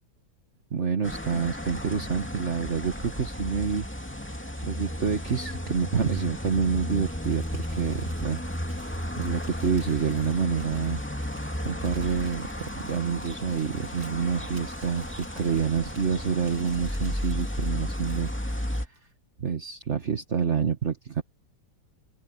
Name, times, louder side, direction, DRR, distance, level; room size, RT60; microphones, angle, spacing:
voice 1, 0.7-3.9 4.6-8.4 8.8-11.0 11.6-19.0 19.4-21.2, right 6 dB, 40° right, 1.7 m, -28 dB
sound 1, 1.0-18.9, equal, 5° left, 2.4 m, -33 dB
Crumpling crinkling, 7.0-19.1, right 2 dB, 60° right, 8.1 m, -53 dB
open air
omnidirectional pair, 1.9 m